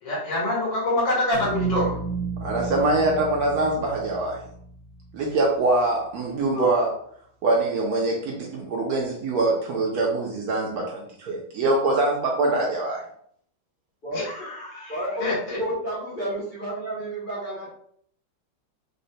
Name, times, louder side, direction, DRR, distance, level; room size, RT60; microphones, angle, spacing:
voice 1, 0.0-2.0 6.5-6.7 14.1-15.6, left 1 dB, 85° left, -7 dB, 1.8 m, -26 dB
sound 1, 1.3-5.5, right 5 dB, 25° left, 0.6 m, -32 dB
voice 2, 2.4-4.4 5.1-6.9 7.4-13.0, right 2 dB, 70° right, -1 dB, 0.9 m, -24 dB
voice 3, 14.9-17.7, equal, 65° left, -8 dB, 0.5 m, -30 dB
3.7 x 2.1 x 2.6 m, 0.64 s
omnidirectional pair, 2.0 m